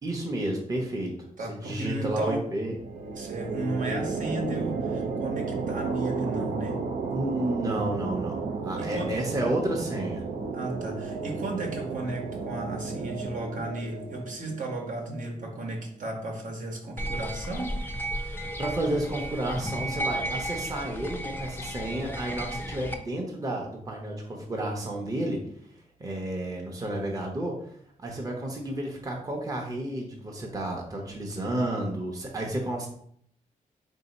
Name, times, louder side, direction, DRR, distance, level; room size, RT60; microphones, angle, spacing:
voice 1, 0.0-2.8 7.1-10.2 18.2-25.4 26.0-27.6 28.0-32.9, right 1 dB, 25° right, 0 dB, 0.7 m, -31 dB
voice 2, 1.4-2.4 3.1-6.8 8.8-9.1 10.5-17.7, right 2 dB, 65° right, 0 dB, 1.0 m, -34 dB
sound 1, 2.7-16.1, right 4 dB, 85° right, 0.5 m, -33 dB
sound 2, 17.0-23.0, right 1 dB, 15° left, 0.4 m, -33 dB
3.7 x 2.7 x 4.0 m, 0.65 s
wide cardioid pair, 130°, 14 cm